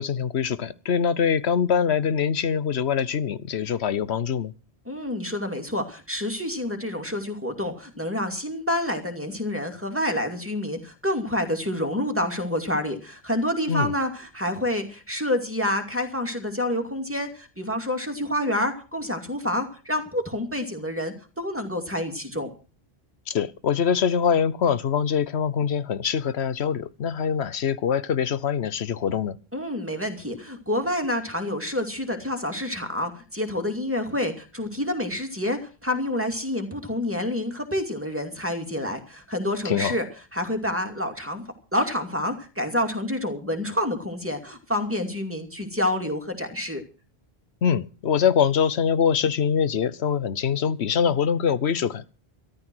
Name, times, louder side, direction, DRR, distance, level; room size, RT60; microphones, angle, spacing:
voice 1, 0.0-4.5 13.7-13.9 23.3-29.4 39.6-40.0 47.6-52.1, left 7 dB, 90° left, 1.2 m, -24 dB
voice 2, 4.9-22.5 29.5-40.1 40.3-41.4 41.7-46.8, left 1 dB, 10° right, 2.5 m, -28 dB
14.0 x 11.5 x 6.2 m
omnidirectional pair, 1.1 m